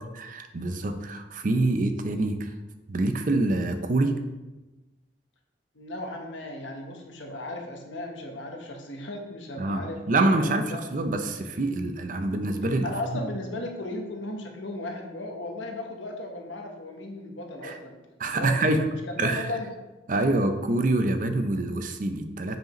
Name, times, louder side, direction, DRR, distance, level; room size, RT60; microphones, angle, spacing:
voice 1, 0.1-2.5 2.9-4.2 9.6-12.9 13.1-13.2 17.6-17.8 18.2-18.9 19.2-19.5 20.1-22.6, right 2 dB, 45° right, 8 dB, 0.5 m, -26 dB
voice 2, 5.7-10.8 12.8-18.0 18.3-19.7, left 1 dB, 85° left, 3 dB, 1.1 m, -36 dB
7.6 x 5.0 x 3.1 m, 1.1 s
head